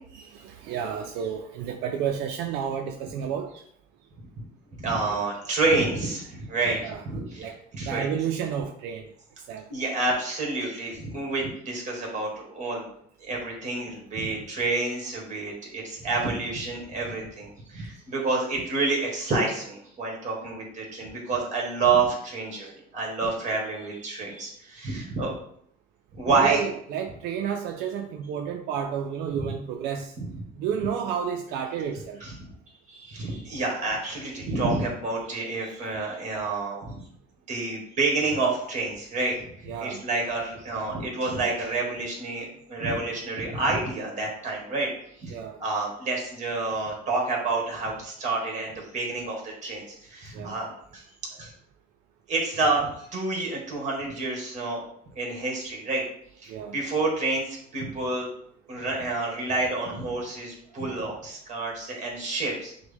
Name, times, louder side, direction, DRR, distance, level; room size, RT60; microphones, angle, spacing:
voice 1, 0.3-3.6 6.8-7.0 7.4-7.6 7.8-9.1 9.5-9.7 26.3-30.1 30.6-32.2 39.7-40.0 45.3-45.6 50.3-50.6 56.5-56.8, right 8 dB, 85° right, 4 dB, 0.4 m, -31 dB
voice 2, 4.8-8.1 9.7-12.9 13.2-25.4 26.1-26.6 29.3-29.5 30.2-30.5 32.2-32.3 32.9-37.0 37.5-44.9 45.2-51.0 51.3-51.5 52.3-54.8 55.1-56.0 56.4-58.3 58.7-62.7, right 3 dB, 45° right, -1 dB, 1.7 m, -29 dB
6.0 x 2.1 x 3.5 m, 0.67 s
cardioid pair, 110°, 17 cm